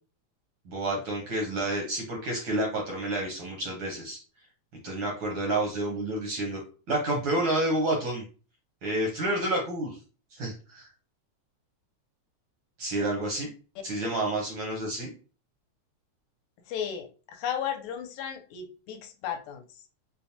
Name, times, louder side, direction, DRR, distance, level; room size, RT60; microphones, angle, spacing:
voice 1, 0.6-4.2 4.8-6.6 6.9-8.2 8.8-10.0 10.3-10.9 12.8-13.5 13.8-15.1, right 1 dB, 70° right, -1 dB, 1.2 m, -29 dB
voice 2, 16.7-19.6, left 8 dB, 85° left, 5 dB, 2.0 m, -34 dB
5.1 x 2.1 x 2.8 m, 0.35 s
omnidirectional pair, 3.4 m